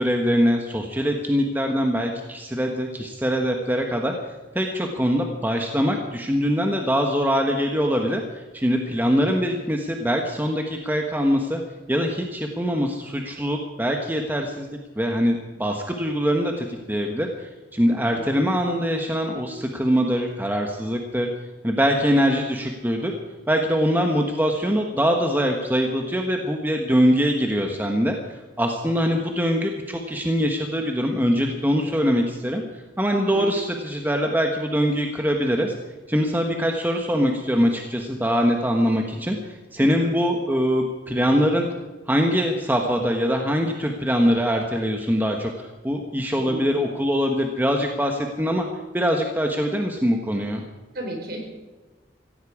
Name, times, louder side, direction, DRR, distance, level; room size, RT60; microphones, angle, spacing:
voice 1, 0.0-4.1 4.5-11.6 11.9-14.7 15.0-21.3 21.6-23.1 23.5-28.2 28.6-32.6 33.0-35.7 36.1-41.7 42.1-48.7 48.9-50.6, equal, 10° right, 2 dB, 1.1 m, -23 dB
voice 2, 17.8-18.3 33.1-33.6 36.5-36.6 39.8-40.1 46.4-46.8 50.9-51.4, equal, 55° right, 2 dB, 4.3 m, -35 dB
16.0 x 16.0 x 4.8 m, 1.2 s
head